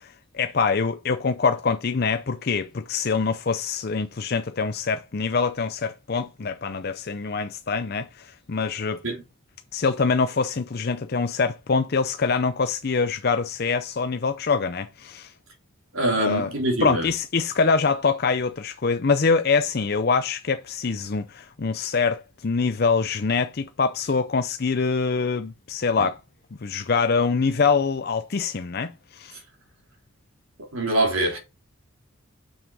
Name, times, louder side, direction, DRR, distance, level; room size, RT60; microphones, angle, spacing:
voice 1, 0.0-9.0 9.7-15.3 16.2-16.5 16.8-26.2 26.6-29.4, left 4 dB, 50° left, 0.5 m, -24 dB
voice 2, 15.9-17.1 26.0-26.1 30.7-31.4, right 1 dB, 85° right, 3.3 m, -24 dB
7.1 x 6.3 x 4.7 m
head